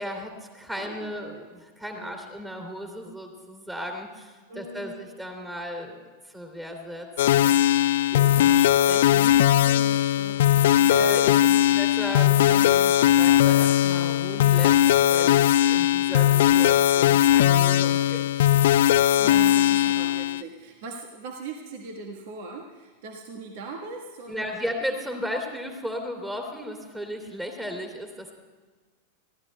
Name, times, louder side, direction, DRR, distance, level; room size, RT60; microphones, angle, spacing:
voice 1, 0.0-7.1 7.4-7.6 8.1-9.6 10.9-14.8 15.1-18.4 24.3-28.3, equal, 10° right, 3 dB, 2.7 m, -35 dB
voice 2, 0.9-1.5 1.9-2.2 4.5-5.0 9.6-10.9 11.4-11.7 19.2-24.7, right 3 dB, 50° right, 2 dB, 1.4 m, -40 dB
sound 1, 7.2-20.4, left 12 dB, 55° left, 0.3 m, -19 dB
23.5 x 15.5 x 2.2 m, 1.4 s
figure-of-eight pair, 90°, 0 cm